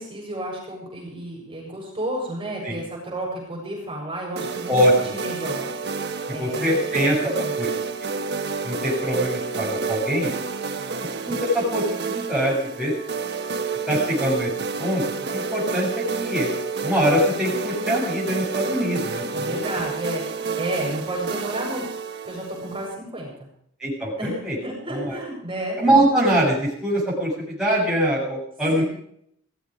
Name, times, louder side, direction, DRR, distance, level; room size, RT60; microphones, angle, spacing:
voice 1, 0.0-6.9 7.3-7.5 10.7-11.1 19.3-21.9 22.2-23.5 24.2-25.8 28.7-28.8, right 1 dB, 25° right, -3 dB, 7.4 m, -32 dB
sound 1, 4.4-22.9, right 5 dB, 50° right, 1.3 m, -29 dB
voice 2, 6.4-7.2 7.6-7.7 8.6-10.3 11.3-12.9 13.9-14.5 14.8-15.0 15.3-15.9 16.2-16.5 16.8-19.8 23.8-24.6 24.9-25.2 25.8-28.8, equal, 5° right, -7 dB, 7.4 m, -23 dB
18.0 x 15.5 x 5.3 m, 0.69 s
head